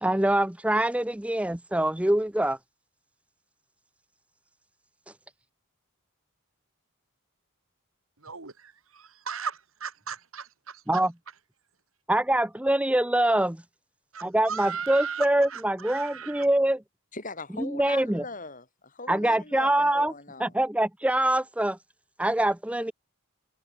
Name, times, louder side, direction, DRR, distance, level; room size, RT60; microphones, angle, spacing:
voice 1, 0.0-2.6 10.9-11.1 12.1-13.6 14.2-16.8 17.6-18.2 19.1-20.1 20.4-21.8 22.2-22.9, right 1 dB, 5° right, 0.5 m, -24 dB
voice 2, 8.2-11.0 14.1-16.5, right 6 dB, 70° right, 2.5 m, -37 dB
voice 3, 17.1-20.6, left 3 dB, 35° left, 7.0 m, -40 dB
head